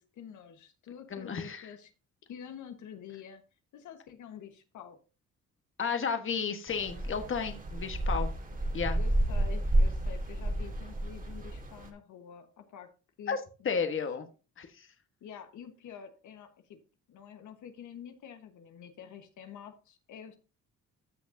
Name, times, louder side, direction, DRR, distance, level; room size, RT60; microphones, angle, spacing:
voice 1, 0.0-1.9 2.2-3.4 3.7-5.0 8.9-12.9 13.2-14.1 15.2-16.8 17.1-20.4, left 8 dB, 75° left, 7 dB, 1.3 m, -48 dB
voice 2, 1.1-1.7 5.8-8.3 8.7-9.0 13.3-13.4 13.6-14.3 14.6-14.9, left 6 dB, 40° left, 7 dB, 1.4 m, -32 dB
sound 1, 6.7-11.9, right 1 dB, 25° right, 2.0 m, -30 dB
14.5 x 6.1 x 2.7 m, 0.32 s
cardioid pair, 90°, 30 cm